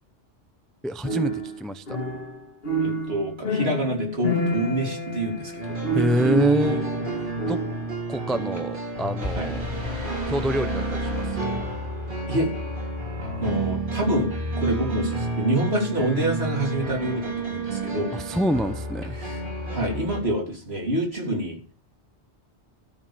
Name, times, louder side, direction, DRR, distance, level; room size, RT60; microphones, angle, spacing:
voice 1, 0.8-2.0 5.9-6.9 7.5-7.6 8.1-9.7 10.3-11.6 18.1-19.2, equal, ahead, 11 dB, 0.5 m, -26 dB
sound 1, 1.0-7.9, right 1 dB, 55° left, 2.1 m, -27 dB
voice 2, 2.8-5.7 9.3-9.5 12.3-12.5 13.2-18.1 19.1-19.4 19.7-21.6, right 1 dB, 60° right, 0 dB, 3.6 m, -27 dB
sound 2, 5.6-20.2, right 2 dB, 45° right, 2.9 m, -31 dB
sound 3, 9.2-12.2, left 2 dB, 90° right, 6.5 m, -32 dB
13.0 x 5.4 x 7.0 m, 0.36 s
omnidirectional pair, 1.2 m